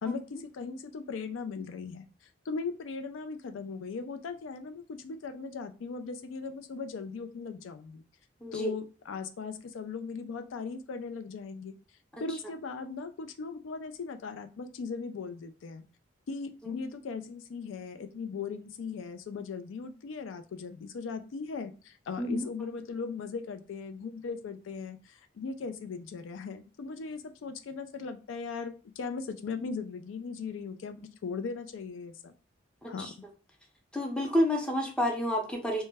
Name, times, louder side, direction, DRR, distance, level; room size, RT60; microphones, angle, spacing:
voice 1, 0.0-2.1 2.5-8.0 8.5-11.7 12.2-15.9 16.3-32.3 32.9-33.1, left 5 dB, 85° left, 9 dB, 0.4 m, -38 dB
voice 2, 8.4-8.7 12.1-12.2 22.2-22.4 32.8-33.1 33.9-35.8, left 1 dB, 5° left, 1 dB, 0.5 m, -29 dB
2.1 x 2.0 x 3.3 m, 0.35 s
head